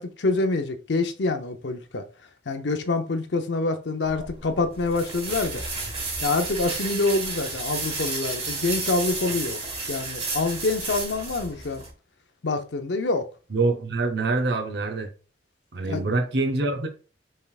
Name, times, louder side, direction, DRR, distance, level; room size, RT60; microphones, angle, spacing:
voice 1, 0.0-2.0 2.5-5.6 6.2-9.6 9.9-11.8 12.4-13.3 15.8-16.0, left 3 dB, 70° left, 0.6 m, -26 dB
sound 1, 4.1-11.9, right 3 dB, 30° right, 1.4 m, -32 dB
voice 2, 13.5-15.1 15.7-16.9, right 3 dB, 65° right, 0.8 m, -25 dB
5.5 x 3.4 x 2.4 m
head